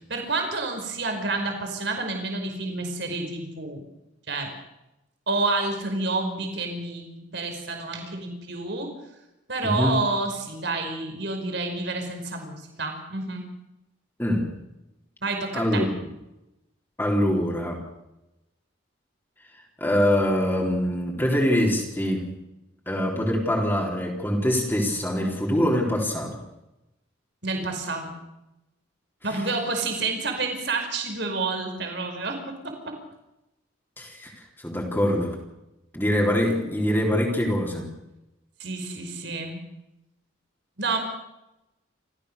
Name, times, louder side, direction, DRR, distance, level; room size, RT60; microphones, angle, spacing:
voice 1, 0.1-3.8 4.3-4.5 5.3-8.9 9.5-13.5 15.2-15.8 27.4-28.1 29.2-32.9 38.6-39.6 40.8-41.0, right 3 dB, 60° right, 4 dB, 5.1 m, -29 dB
voice 2, 9.6-10.0 14.2-14.5 15.5-15.9 17.0-17.8 19.8-22.4 22.9-26.4 29.3-29.4 34.0-35.4 35.9-37.9, equal, 10° left, -1 dB, 3.8 m, -24 dB
29.0 x 15.0 x 6.7 m, 0.92 s
head